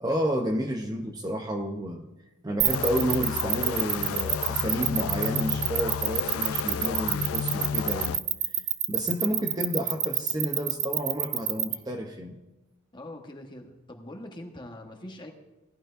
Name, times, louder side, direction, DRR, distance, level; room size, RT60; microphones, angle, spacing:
voice 1, 0.0-2.1 2.4-8.2 8.5-8.6 8.9-12.4, equal, 20° right, 4 dB, 0.6 m, -30 dB
sound 1, 2.6-11.7, right 15 dB, 60° right, 0.6 m, -26 dB
sound 2, 2.7-8.2, left 7 dB, 80° left, 0.3 m, -32 dB
voice 2, 12.9-15.3, left 1 dB, 20° left, 3 dB, 1.2 m, -43 dB
17.5 x 11.5 x 2.5 m, 1.0 s
head